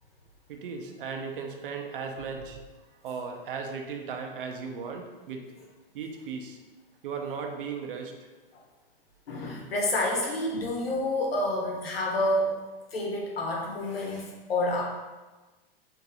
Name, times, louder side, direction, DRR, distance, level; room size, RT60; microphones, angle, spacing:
voice 1, 0.5-2.6 3.0-5.4 5.9-6.6 7.0-8.3, right 5 dB, 65° right, 3 dB, 0.6 m, -36 dB
voice 2, 9.3-12.5 12.9-14.8, left 1 dB, 85° left, -2 dB, 1.1 m, -28 dB
3.0 x 2.9 x 3.7 m, 1.2 s
hypercardioid pair, 115°, 29 cm